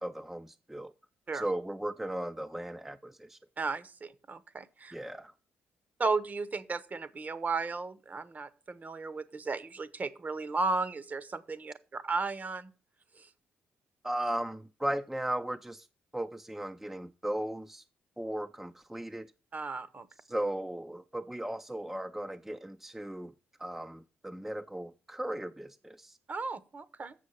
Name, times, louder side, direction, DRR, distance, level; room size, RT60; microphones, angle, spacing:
voice 1, 0.0-0.9 1.3-3.4 4.9-5.3 14.0-15.9 16.1-17.8 18.2-19.3 20.3-23.3 23.6-26.2, right 1 dB, 5° right, 0.4 m, -36 dB
voice 2, 3.6-5.0 6.0-12.7 13.2-13.3 19.5-20.1 26.3-27.1, right 3 dB, 35° right, 0.9 m, -34 dB
7.4 x 6.3 x 6.4 m
supercardioid pair, 70°, 4 cm